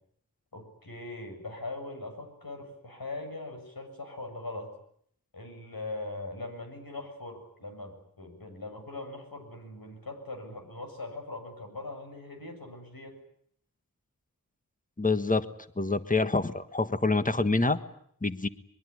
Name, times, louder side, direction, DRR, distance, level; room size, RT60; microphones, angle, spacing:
voice 1, 0.5-4.7 5.3-13.2, left 2 dB, 75° left, 4 dB, 7.4 m, -41 dB
voice 2, 15.0-15.5 15.8-17.8 18.2-18.5, left 3 dB, 20° left, 11 dB, 1.5 m, -26 dB
23.0 x 23.0 x 9.8 m, 0.66 s
wide cardioid pair, 45°, 36 cm